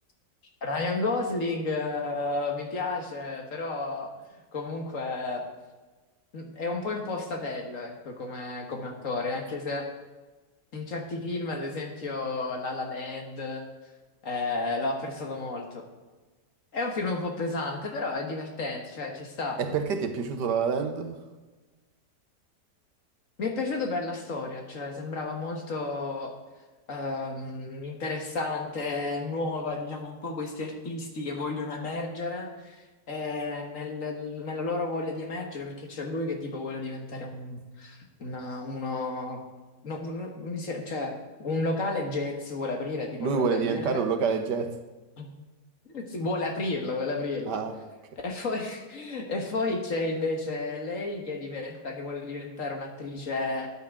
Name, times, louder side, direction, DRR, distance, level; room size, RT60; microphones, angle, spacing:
voice 1, 0.6-5.4 6.3-9.9 10.7-13.6 14.2-15.8 16.7-19.6 23.4-26.4 26.9-39.4 39.8-44.0 45.2-45.3 45.9-47.6 48.2-53.7, left 3 dB, 50° left, 2 dB, 1.8 m, -32 dB
voice 2, 19.6-21.2 43.2-44.7 47.5-47.8, right 5 dB, 85° right, 7 dB, 1.6 m, -27 dB
13.5 x 9.4 x 3.7 m, 1.3 s
omnidirectional pair, 1.8 m